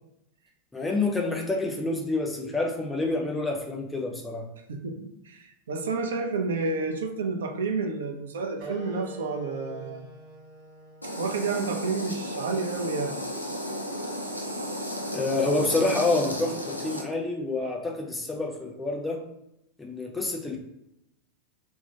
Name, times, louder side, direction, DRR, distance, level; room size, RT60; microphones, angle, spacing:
voice 1, 0.7-4.5 15.1-19.2 19.8-20.6, left 2 dB, 10° left, 0 dB, 0.4 m, -28 dB
voice 2, 4.7-10.1 11.2-13.2, right 4 dB, 65° right, 4 dB, 0.3 m, -30 dB
sound 1, 8.6-13.7, right 2 dB, 35° right, 0.7 m, -45 dB
sound 2, 11.0-17.0, equal, 85° left, 0.4 m, -34 dB
2.2 x 2.0 x 2.8 m, 0.85 s
figure-of-eight pair, 90°, 0 cm